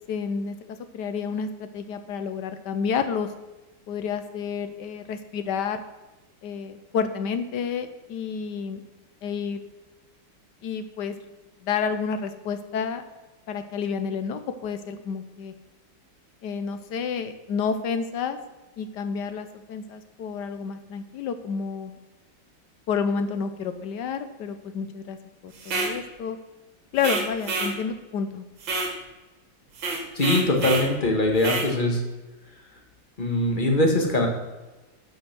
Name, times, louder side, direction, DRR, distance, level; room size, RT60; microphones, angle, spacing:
voice 1, 0.1-0.6 0.9-3.3 3.9-5.8 6.4-8.8 9.2-9.6 10.6-11.2 11.6-13.0 13.5-15.5 16.4-18.4 18.8-21.9 22.9-25.2 25.4-26.4 26.9-28.5, left 6 dB, 65° left, 10 dB, 1.4 m, -30 dB
sound 1, 25.6-26.0 27.0-27.8 28.6-29.0 29.8-30.9 31.4-31.7, right 3 dB, 75° right, 2.2 m, -28 dB
voice 2, 30.1-32.0 33.2-34.3, left 1 dB, 25° left, 2 dB, 1.6 m, -22 dB
11.0 x 5.6 x 6.0 m, 1.1 s
omnidirectional pair, 2.1 m